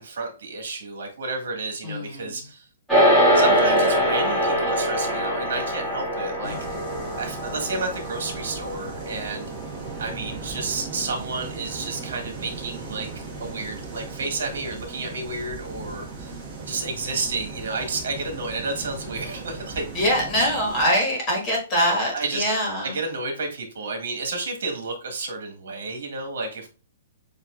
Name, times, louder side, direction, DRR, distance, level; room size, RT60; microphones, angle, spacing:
voice 1, 0.0-2.6 3.3-6.8 7.2-9.5 10.0-16.3 16.7-19.8 22.1-22.4 22.8-26.7, right 3 dB, 70° right, 3 dB, 1.7 m, -31 dB
voice 2, 1.8-2.3 6.4-6.6 19.9-22.9, equal, 15° left, -2 dB, 1.5 m, -23 dB
sound 1, 2.9-12.4, equal, ahead, 1.6 m, -24 dB
sound 2, 6.4-20.8, right 3 dB, 15° right, 1.2 m, -38 dB
7.4 x 2.8 x 2.4 m, 0.34 s
hypercardioid pair, 180°, 0 cm